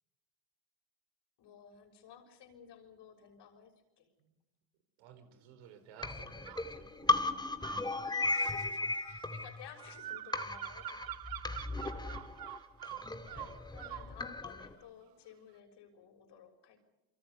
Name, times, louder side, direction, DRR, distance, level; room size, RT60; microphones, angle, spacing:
voice 1, 1.4-4.1 8.3-11.3 13.3-16.9, left 8 dB, 65° left, 4 dB, 6.5 m, -55 dB
voice 2, 5.0-7.4 11.7-12.3, right 8 dB, 80° right, 9 dB, 4.3 m, -57 dB
sound 1, 6.0-10.0 10.3-14.7, left 3 dB, 10° left, 2.0 m, -36 dB
sound 2, 6.0-6.7 7.6-14.1, right 14 dB, 50° right, 1.0 m, -46 dB
29.0 x 23.5 x 5.5 m, 1.0 s
cardioid pair, 105°, 45 cm